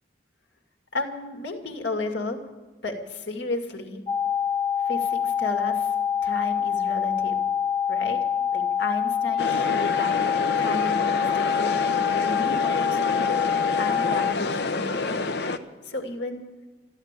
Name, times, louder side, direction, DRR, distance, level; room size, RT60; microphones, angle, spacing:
voice 1, 0.9-2.4 2.8-4.0 4.9-5.9 6.2-7.5 7.9-8.2 8.5-10.2 10.6-13.4 13.8-15.2 15.8-16.4, left 2 dB, 85° left, 3 dB, 2.3 m, -33 dB
sound 1, 4.1-14.3, left 8 dB, 25° left, 0.8 m, -25 dB
sound 2, 9.4-15.6, left 3 dB, 70° left, 0.9 m, -28 dB
14.0 x 12.0 x 8.3 m, 1.2 s
head